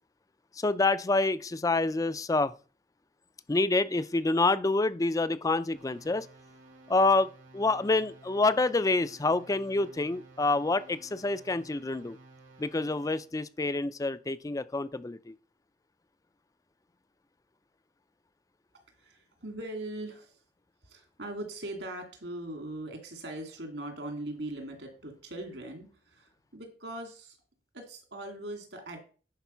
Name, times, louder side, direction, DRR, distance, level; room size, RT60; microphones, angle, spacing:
voice 1, 0.6-2.5 3.5-6.3 6.9-12.2 12.6-15.3, left 3 dB, 20° left, 0.4 m, -27 dB
sound 1, 5.7-13.3, right 2 dB, 85° right, 2.5 m, -54 dB
voice 2, 18.9-20.4 20.8-27.4 27.7-29.0, right 1 dB, 70° right, 2.4 m, -40 dB
10.5 x 4.6 x 5.6 m
head